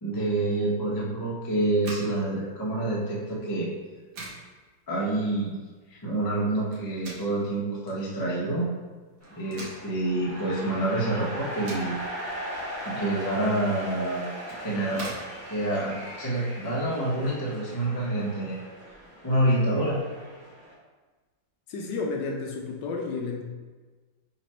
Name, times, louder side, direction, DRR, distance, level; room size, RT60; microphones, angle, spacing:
voice 1, 0.0-3.7 4.9-5.5 5.9-8.7 9.4-12.0 12.8-14.3 14.6-15.1 15.5-18.6 19.2-20.0, right 1 dB, 35° left, -5 dB, 0.3 m, -27 dB
sound 1, 1.7-16.7, right 2 dB, 60° right, 1.5 m, -46 dB
sound 2, 9.2-20.7, equal, 10° right, 1.1 m, -39 dB
voice 2, 21.7-23.4, left 4 dB, 75° left, 0 dB, 1.2 m, -31 dB
4.0 x 3.0 x 4.2 m, 1.3 s
omnidirectional pair, 2.1 m